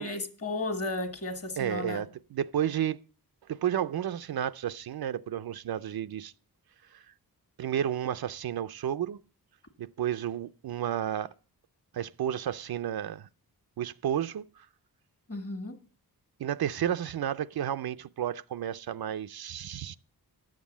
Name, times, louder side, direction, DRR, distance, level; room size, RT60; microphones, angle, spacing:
voice 1, 0.0-2.0 15.3-15.8, left 2 dB, 35° left, 1.5 m, -34 dB
voice 2, 1.6-3.0 3.5-6.3 6.9-7.0 7.6-9.2 9.8-11.3 11.9-13.3 13.8-14.7 16.4-20.0, right 10 dB, 65° right, 0.5 m, -32 dB
10.5 x 7.5 x 7.1 m
wide cardioid pair, 165°, 40 cm